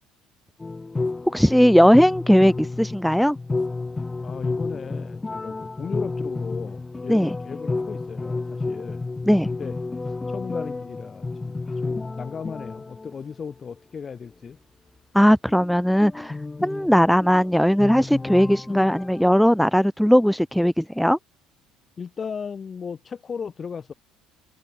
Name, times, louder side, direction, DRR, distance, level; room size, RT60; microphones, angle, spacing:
sound 1, 0.6-13.2 15.5-19.3, left 3 dB, 15° left, 3.6 m, -31 dB
voice 1, 1.3-3.4 7.1-7.3 9.3-9.5 15.1-21.2, equal, ahead, 0.7 m, -18 dB
voice 2, 4.2-9.0 9.5-9.8 10.3-14.6 16.8-16.9 22.0-23.9, left 6 dB, 35° left, 7.9 m, -36 dB
supercardioid pair, 90°, 0 cm